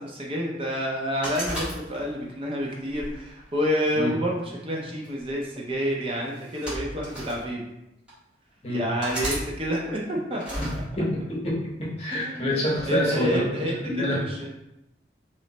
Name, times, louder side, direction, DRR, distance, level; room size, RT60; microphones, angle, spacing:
voice 1, 0.0-7.6 8.7-10.8 12.1-14.5, equal, 30° right, -2 dB, 0.6 m, -29 dB
sound 1, 1.2-2.3 2.9-4.1 5.0-5.3 6.3-7.4 8.1-8.2 9.0-9.4 10.4-10.8, equal, 5° right, 1.4 m, -33 dB
voice 2, 11.0-13.4 13.9-14.2, left 1 dB, 35° left, -3 dB, 0.9 m, -26 dB
3.1 x 3.0 x 4.1 m, 0.90 s
head